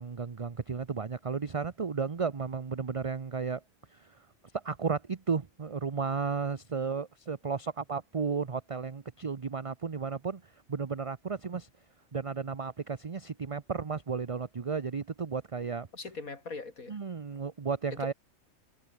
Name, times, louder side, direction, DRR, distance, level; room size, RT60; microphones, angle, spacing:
voice 1, 0.0-3.6 3.9-4.1 4.5-11.7 12.1-15.9 16.9-18.1, right 5 dB, 30° right, 0.7 m, -33 dB
voice 2, 15.9-17.0 17.9-18.1, left 4 dB, 80° left, 3.5 m, -41 dB
omnidirectional pair, 1.5 m